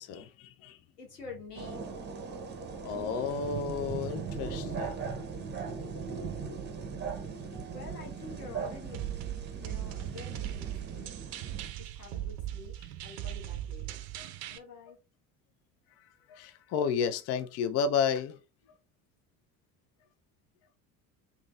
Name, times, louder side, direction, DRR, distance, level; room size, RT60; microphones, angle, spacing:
voice 1, 0.0-0.8 2.8-5.0 14.2-14.3 16.3-18.4, left 6 dB, 35° left, 0.4 m, -32 dB
voice 2, 1.0-1.9 6.0-6.6 7.7-11.1 11.8-12.8 13.0-14.0 14.5-15.0, left 4 dB, 85° left, 1.2 m, -48 dB
sound 1, 1.5-11.7, right 5 dB, 25° right, 0.8 m, -39 dB
sound 2, 7.5-12.2, right 4 dB, 55° left, 1.6 m, -57 dB
sound 3, 8.9-14.6, right 12 dB, 55° right, 0.6 m, -39 dB
3.7 x 2.8 x 2.3 m
figure-of-eight pair, 60°, 46 cm